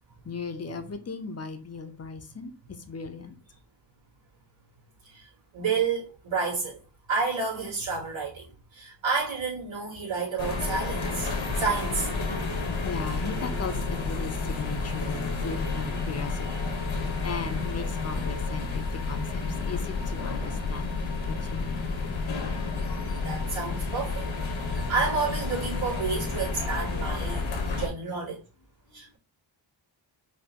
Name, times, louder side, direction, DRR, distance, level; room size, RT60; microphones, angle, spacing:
voice 1, 0.2-2.5 2.9-3.3 12.8-16.7 17.2-21.9 27.7-27.8, left 4 dB, 35° left, 0.7 m, -37 dB
voice 2, 5.5-6.8 7.1-8.5 8.7-11.3 11.6-12.1 23.2-24.3 24.7-28.4 28.9-29.2, right 4 dB, 85° right, 2.6 m, -30 dB
sound 1, 10.4-27.9, left 4 dB, 80° left, 1.3 m, -30 dB
5.3 x 3.0 x 2.9 m
wide cardioid pair, 115°, 45 cm